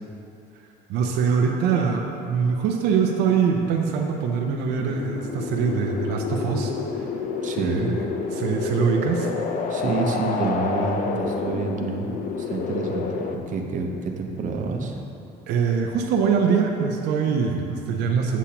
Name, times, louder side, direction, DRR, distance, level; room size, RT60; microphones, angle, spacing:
voice 1, 0.9-6.7 7.0-7.1 7.6-8.0 8.3-9.3 15.5-18.4, right 6 dB, 85° right, 1 dB, 0.6 m, -23 dB
sound 1, 4.6-13.4, left 5 dB, 50° left, 0.6 m, -29 dB
voice 2, 7.4-7.9 9.7-12.1 12.4-13.1 13.3-15.0, right 4 dB, 50° right, 2 dB, 0.8 m, -28 dB
8.3 x 7.1 x 2.8 m, 2.8 s
cardioid pair, 110°, 17 cm